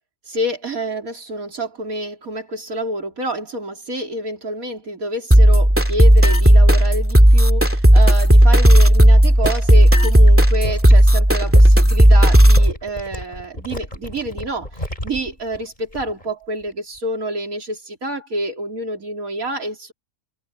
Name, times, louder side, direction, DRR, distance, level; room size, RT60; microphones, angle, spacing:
voice 1, 0.3-14.7 15.0-19.9, right 1 dB, 60° right, 4.0 m, -28 dB
sound 1, 5.3-12.7, equal, 10° right, 2.5 m, -11 dB
sound 2, 9.2-16.3 16.6-17.0, left 1 dB, 25° left, 7.2 m, -33 dB
open air
omnidirectional pair, 1.6 m